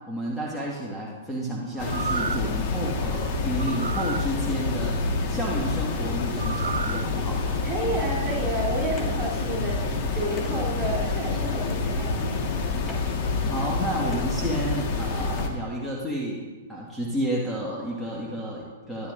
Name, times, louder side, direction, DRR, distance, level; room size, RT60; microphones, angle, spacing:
voice 1, 0.1-5.0 5.3-7.4 13.4-19.1, right 1 dB, ahead, -5 dB, 1.7 m, -31 dB
sound 1, 1.8-15.5, left 3 dB, 40° left, 1.6 m, -27 dB
sound 2, 1.8-2.6 3.6-4.3 6.4-7.0 7.5-7.6, right 5 dB, 75° right, 0.4 m, -31 dB
voice 2, 7.6-12.4, right 2 dB, 30° right, -3 dB, 3.3 m, -31 dB
sound 3, 9.0-15.6, left 3 dB, 20° left, 1.9 m, -48 dB
13.5 x 10.0 x 2.6 m, 1.3 s
figure-of-eight pair, 110°, 0 cm